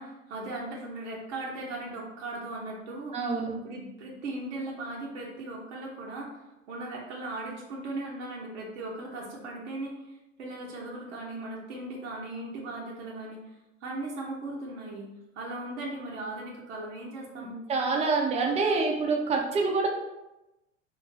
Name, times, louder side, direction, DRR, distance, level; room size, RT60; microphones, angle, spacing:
voice 1, 0.0-3.2 3.6-6.3 6.7-13.5 13.8-15.1 15.3-17.6, right 2 dB, 65° right, -3 dB, 0.9 m, -38 dB
voice 2, 3.1-3.6 17.4-19.9, right 4 dB, 15° right, 1 dB, 0.5 m, -27 dB
3.7 x 2.6 x 2.7 m, 0.96 s
figure-of-eight pair, 75°, 38 cm